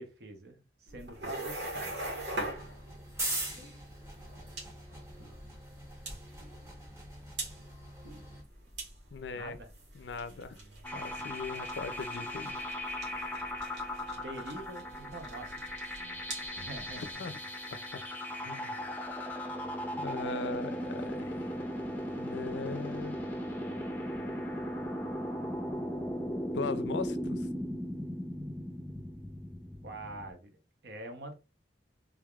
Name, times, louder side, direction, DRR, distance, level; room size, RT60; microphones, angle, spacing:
voice 1, 0.0-2.0 9.3-9.7 14.1-15.6 16.5-17.2 29.8-31.3, right 1 dB, 65° right, 0.8 m, -45 dB
sound 1, 0.9-17.1, right 1 dB, 90° right, 1.6 m, -44 dB
sound 2, 1.6-8.4, right 1 dB, 15° right, 0.9 m, -42 dB
voice 2, 9.1-9.6 9.9-10.6 10.9-12.6 17.0-17.4 17.7-18.0 18.4-18.8 20.0-21.5 22.2-23.2 26.5-27.5, left 4 dB, 80° left, 0.4 m, -39 dB
sound 3, 10.8-30.3, equal, 10° left, 0.5 m, -37 dB
3.5 x 3.3 x 2.3 m
head